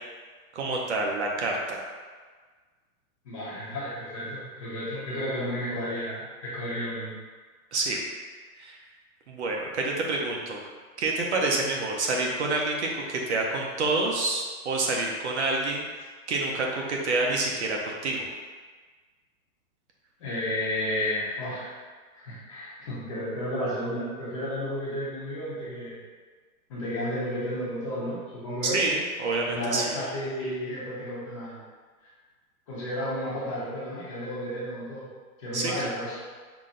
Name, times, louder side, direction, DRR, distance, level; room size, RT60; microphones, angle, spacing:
voice 1, 0.5-1.8 7.7-8.0 8.6-8.8 9.3-10.6 11.0-15.9 16.3-18.3 28.6-30.0 35.5-36.0, right 2 dB, 50° right, 0 dB, 0.7 m, -28 dB
voice 2, 3.2-7.2 20.2-21.7 22.1-26.0 26.7-28.8 29.5-31.6 32.0-32.1 32.7-35.1 35.4-36.2, equal, 20° left, -8 dB, 0.8 m, -32 dB
5.8 x 2.2 x 3.7 m, 1.4 s
hypercardioid pair, 170°, 45 cm